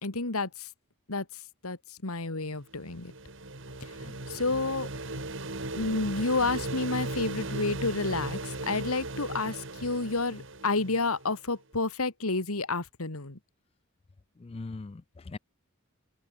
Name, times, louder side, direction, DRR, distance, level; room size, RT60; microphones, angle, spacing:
voice 1, 0.0-0.5 1.1-1.2 1.6-1.8 2.0-3.1 4.3-4.9 5.7-13.4, left 3 dB, 85° left, 2.2 m, -30 dB
sound 1, 2.6-11.4, right 2 dB, 60° right, 3.0 m, -37 dB
voice 2, 14.4-15.4, left 3 dB, 25° left, 0.3 m, -41 dB
open air
head